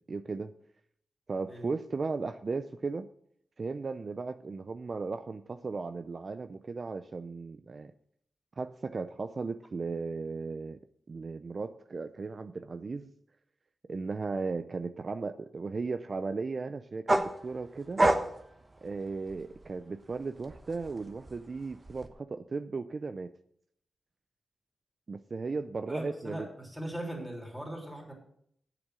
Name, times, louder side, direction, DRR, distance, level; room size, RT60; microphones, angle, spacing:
voice 1, 0.1-0.5 1.3-3.1 3.6-7.9 8.6-10.8 11.1-13.1 13.9-18.0 18.8-23.3 25.1-26.5, right 4 dB, 45° right, 10 dB, 0.4 m, -36 dB
sound 1, 17.1-19.7 20.1-22.1, right 1 dB, 25° right, 1.0 m, -29 dB
voice 2, 25.9-28.1, right 1 dB, ahead, -1 dB, 3.3 m, -39 dB
8.1 x 7.0 x 7.7 m, 0.69 s
wide cardioid pair, 95°, 0 cm